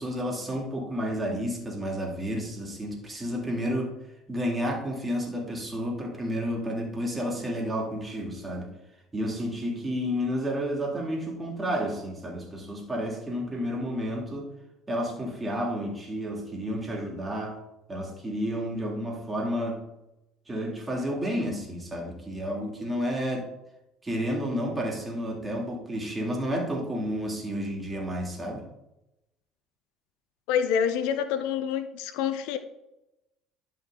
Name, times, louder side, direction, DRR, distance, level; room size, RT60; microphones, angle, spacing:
voice 1, 0.0-3.9 4.3-8.7 9.1-14.5 14.9-17.6 17.9-19.8 20.5-23.5 24.0-28.6, equal, 20° right, 0 dB, 2.9 m, -31 dB
voice 2, 30.5-32.6, left 8 dB, 70° left, 11 dB, 0.7 m, -27 dB
11.0 x 5.3 x 3.9 m, 0.90 s
hypercardioid pair, 70°, 0 cm